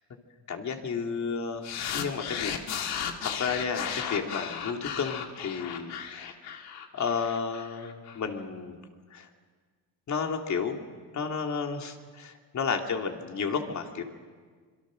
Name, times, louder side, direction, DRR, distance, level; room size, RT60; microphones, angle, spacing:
voice 1, 0.5-2.5 3.2-6.4 6.9-8.8 9.1-9.3 10.1-10.8 11.1-14.0, left 5 dB, 45° left, 3 dB, 2.9 m, -32 dB
sound 1, 1.6-8.2, left 8 dB, 75° left, 2.2 m, -35 dB
26.5 x 23.0 x 6.5 m, 1.5 s
cardioid pair, 100°, 39 cm